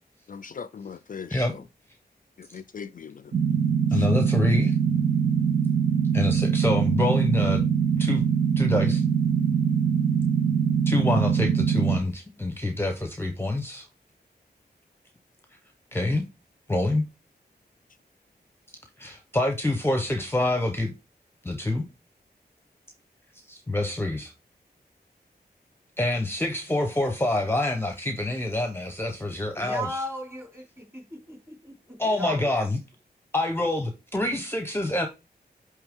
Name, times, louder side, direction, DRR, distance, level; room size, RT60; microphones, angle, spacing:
voice 1, 0.3-1.5 2.4-3.3 3.9-4.0, left 6 dB, 55° left, 0.4 m, -40 dB
sound 1, 3.3-12.0, right 7 dB, 70° right, 1.6 m, -23 dB
voice 2, 3.9-4.8 6.1-7.6 8.0-8.2 8.6-9.0 10.9-13.8 15.9-16.2 16.7-17.0 19.0-20.9 21.4-21.9 23.5-24.3 26.0-30.0 32.0-32.8 33.3-35.1, left 2 dB, 15° left, 0.9 m, -26 dB
voice 3, 29.6-30.6 30.9-32.5, equal, 15° right, 3.4 m, -36 dB
8.6 x 3.3 x 3.6 m
wide cardioid pair, 85°, 17 cm